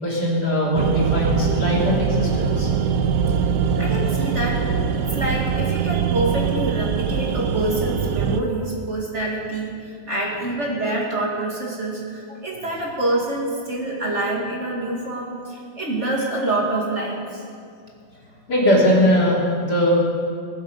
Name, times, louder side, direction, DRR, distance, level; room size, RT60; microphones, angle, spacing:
voice 1, 0.0-2.7 18.5-19.9, equal, 60° left, -5 dB, 3.9 m, -20 dB
sound 1, 0.7-8.4, right 6 dB, 70° right, 1.2 m, -22 dB
voice 2, 3.8-4.6 5.1-9.7 10.1-17.4, right 1 dB, 35° right, -3 dB, 2.4 m, -26 dB
20.5 x 7.7 x 6.5 m, 2.3 s
omnidirectional pair, 2.0 m